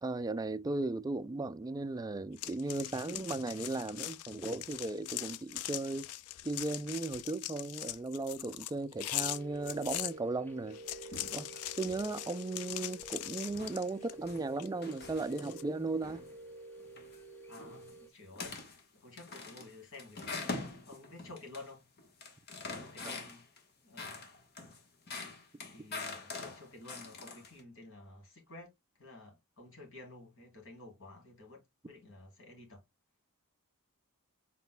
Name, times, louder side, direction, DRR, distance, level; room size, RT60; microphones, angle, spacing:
voice 1, 0.0-6.1 6.4-10.8 11.3-11.5 11.8-16.2, right 2 dB, 15° right, 0.3 m, -36 dB
sound 1, 2.4-10.1 10.7-14.2 14.6-15.6, left 14 dB, 80° left, 0.4 m, -41 dB
sound 2, 9.0-18.1, right 2 dB, 10° left, 0.7 m, -50 dB
sound 3, 10.7-11.5 11.8-12.2 12.7-13.1 13.5-15.6 16.0-16.4 16.8-17.2 17.5-17.9 18.3-18.8 19.2-21.7 22.0-23.6 24.0-27.6, left 3 dB, 45° left, 1.2 m, -44 dB
voice 2, 17.5-20.5 20.9-21.9 22.7-24.2 25.7-28.7 29.0-32.8, left 2 dB, 60° left, 2.4 m, -52 dB
6.0 x 4.0 x 2.2 m
head